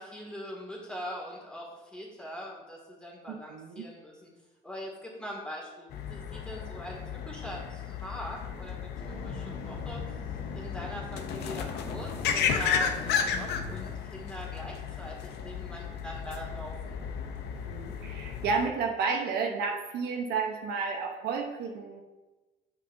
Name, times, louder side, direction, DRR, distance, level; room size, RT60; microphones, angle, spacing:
voice 1, 0.0-4.3 4.6-10.1 10.6-17.0, equal, 5° left, -3 dB, 2.1 m, -42 dB
voice 2, 3.3-3.9 17.5-22.0, right 5 dB, 75° right, 2 dB, 0.9 m, -32 dB
sound 1, 5.9-18.7, left 7 dB, 80° left, 0.7 m, -34 dB
sound 2, 9.0-13.9, left 3 dB, 55° left, 1.6 m, -41 dB
8.3 x 6.5 x 2.7 m, 1.2 s
cardioid pair, 110°, 17 cm